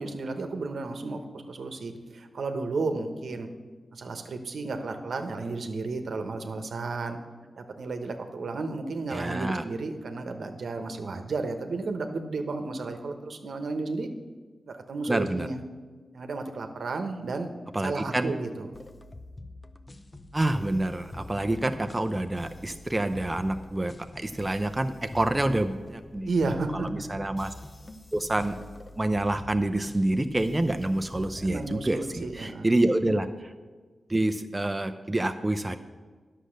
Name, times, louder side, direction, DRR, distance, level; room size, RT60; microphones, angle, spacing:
voice 1, 0.0-3.5 3.9-7.2 7.6-14.1 14.7-15.6 16.1-17.5 17.8-18.7 26.3-26.9 31.4-32.7, right 3 dB, 75° right, 6 dB, 1.0 m, -33 dB
voice 2, 9.1-9.6 15.1-15.5 17.7-18.3 20.3-26.3 26.7-27.5 28.1-28.6 29.0-33.5 34.1-35.8, right 1 dB, 20° right, 7 dB, 0.6 m, -27 dB
sound 1, 18.7-32.3, left 2 dB, 30° left, 0.7 m, -45 dB
10.0 x 6.5 x 6.5 m, 1.4 s
cardioid pair, 60°, 0 cm